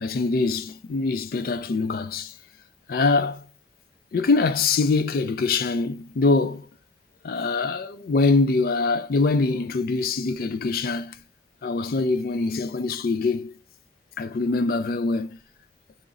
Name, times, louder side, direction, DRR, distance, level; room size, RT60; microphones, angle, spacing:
voice 1, 0.0-2.3 2.9-3.4 4.1-6.7 7.2-11.2 11.6-13.5 14.2-15.4, left 3 dB, 55° left, 0.4 m, -23 dB
3.8 x 3.0 x 3.7 m
head